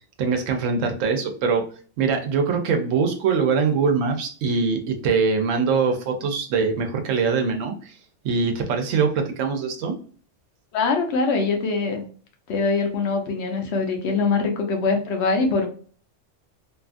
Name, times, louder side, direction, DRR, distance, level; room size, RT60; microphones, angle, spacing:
voice 1, 0.2-1.6 2.0-7.9 8.2-9.9, right 5 dB, 85° right, 5 dB, 1.0 m, -23 dB
voice 2, 10.7-12.0 12.5-15.7, left 4 dB, 65° left, 3 dB, 0.8 m, -23 dB
2.7 x 2.3 x 2.4 m, 0.42 s
omnidirectional pair, 1.3 m